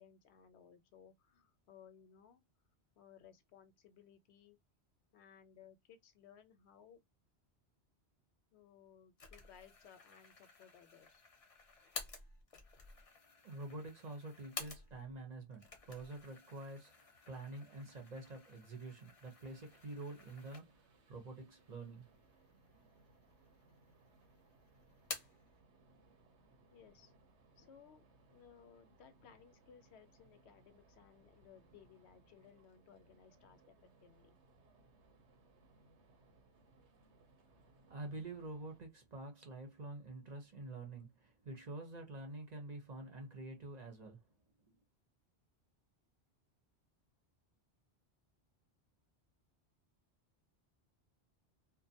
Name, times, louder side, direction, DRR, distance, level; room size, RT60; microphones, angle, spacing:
voice 1, 0.0-2.4 3.0-4.6 5.1-7.0 8.5-11.2 26.7-27.1 27.6-28.0 28.3-33.7 34.0-34.4, left 8 dB, 80° left, 0.9 m, -61 dB
sound 1, 9.2-15.2 15.5-21.0 21.4-21.5 22.3-23.0 23.3-24.1 24.4-25.5, left 4 dB, 40° left, 0.6 m, -52 dB
voice 2, 13.4-22.1 22.7-22.8 37.9-44.2 44.7-44.8, right 2 dB, 45° right, 0.8 m, -48 dB
sound 2, 19.4-38.8, right 2 dB, 90° right, 1.0 m, -68 dB
2.5 x 2.2 x 2.6 m
omnidirectional pair, 1.1 m